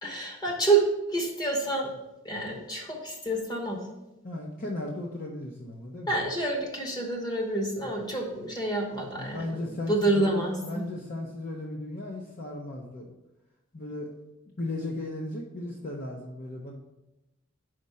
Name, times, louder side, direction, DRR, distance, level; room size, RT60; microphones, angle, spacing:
voice 1, 0.0-1.9 2.2-3.8 6.1-10.8, right 2 dB, 20° left, 1 dB, 1.0 m, -28 dB
voice 2, 4.2-6.2 7.8-7.9 9.1-13.1 13.7-14.1 14.6-16.7, left 1 dB, 45° left, -1 dB, 0.7 m, -36 dB
5.1 x 4.1 x 5.5 m, 0.97 s
head